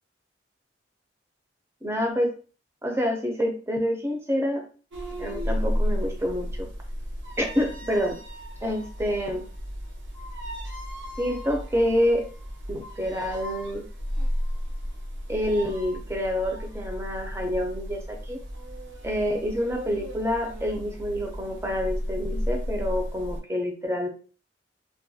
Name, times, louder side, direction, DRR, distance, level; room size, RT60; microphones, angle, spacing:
voice 1, 1.8-2.3 2.8-4.6 5.2-6.7 7.4-8.2 8.6-9.4 11.2-12.2 12.7-13.8 15.3-18.4 19.0-24.1, equal, 15° right, 2 dB, 0.4 m, -27 dB
sound 1, 4.9-23.4, equal, 80° right, 0.6 m, -33 dB
2.3 x 2.1 x 2.6 m, 0.39 s
head